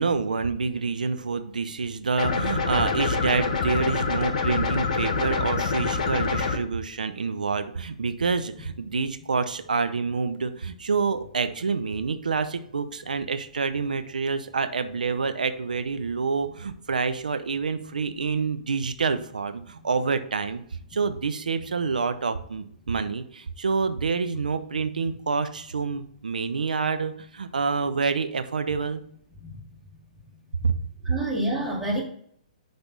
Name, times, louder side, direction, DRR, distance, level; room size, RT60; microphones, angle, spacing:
voice 1, 0.0-20.6 20.9-29.0 30.6-30.7, right 4 dB, 85° right, 9 dB, 0.7 m, -27 dB
sound 1, 2.2-6.6, left 4 dB, 60° left, 1.3 m, -26 dB
voice 2, 31.1-32.0, right 1 dB, ahead, -7 dB, 2.6 m, -28 dB
10.5 x 3.5 x 4.0 m, 0.64 s
hypercardioid pair, 130°, 4 cm